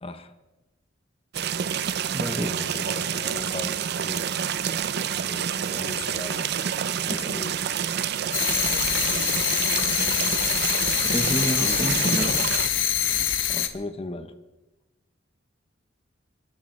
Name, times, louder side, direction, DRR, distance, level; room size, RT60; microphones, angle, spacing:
voice 1, 0.0-0.3 2.2-4.3 5.2-7.6 11.6-12.2 13.5-14.3, left 2 dB, 30° left, 0.8 m, -38 dB
sound 1, 1.3-12.7, right 8 dB, 60° right, 0.5 m, -28 dB
voice 2, 2.1-2.7 11.0-12.4, equal, 15° right, 1.2 m, -28 dB
sound 2, 8.3-13.7, left 11 dB, 75° left, 1.0 m, -25 dB
29.0 x 13.0 x 3.2 m
head